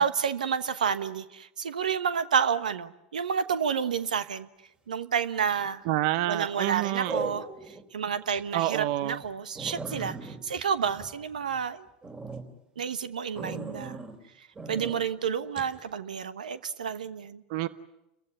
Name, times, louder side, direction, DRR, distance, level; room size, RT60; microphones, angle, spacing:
voice 1, 0.0-4.5 4.9-5.8 6.3-7.5 7.9-11.9 12.8-14.0 14.7-17.4, right 7 dB, 90° right, 13 dB, 1.2 m, -29 dB
sound 1, 5.5-5.9 7.1-7.8 8.3-8.4 8.9-9.0 9.2-9.3 9.6-11.6 12.0-12.4 13.4-14.2 14.6-15.0 15.6-15.7, right 3 dB, 20° right, 4.1 m, -38 dB
voice 2, 5.9-7.2 8.3-9.2 17.5-17.7, right 15 dB, 65° right, 15 dB, 0.9 m, -28 dB
30.0 x 15.0 x 9.9 m, 0.91 s
hypercardioid pair, 90°, 4 cm